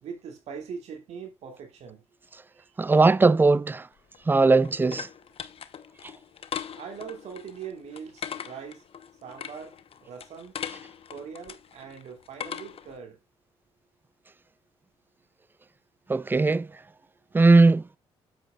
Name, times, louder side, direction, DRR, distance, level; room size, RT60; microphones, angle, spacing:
voice 1, 0.0-2.1 2.5-2.7 6.7-8.8 9.2-10.5 11.1-13.2, right 6 dB, 70° right, 2.5 m, -41 dB
voice 2, 2.8-3.8 4.3-5.1 16.1-16.7 17.3-17.8, right 3 dB, 15° right, 0.4 m, -19 dB
sound 1, 4.0-13.0, left 8 dB, 55° left, 0.9 m, -40 dB
9.0 x 8.0 x 2.4 m
supercardioid pair, 55°, 12 cm